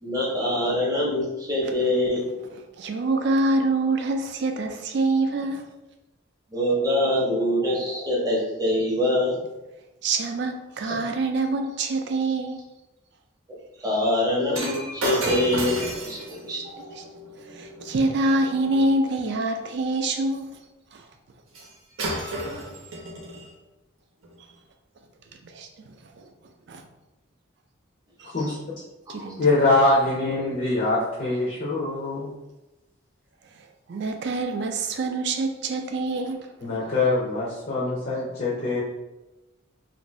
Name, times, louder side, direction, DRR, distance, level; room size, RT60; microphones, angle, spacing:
voice 1, 0.0-2.3 6.5-9.4 13.8-16.8, left 1 dB, 15° right, -4 dB, 0.7 m, -24 dB
voice 2, 2.5-5.7 10.0-12.6 16.5-16.6 16.9-17.0 17.5-20.5 20.9-21.0 25.4-26.2 26.7-26.8 28.2-28.3 29.1-29.4 33.9-36.5, right 2 dB, 55° right, 5 dB, 0.4 m, -26 dB
Shatter, 14.5-18.9 21.5-21.7 22.0-23.5 24.2-24.4, right 1 dB, 85° right, 0.8 m, -33 dB
voice 3, 29.4-32.3 36.6-38.8, left 2 dB, 40° left, -6 dB, 0.5 m, -23 dB
2.6 x 2.5 x 3.0 m, 1.0 s
head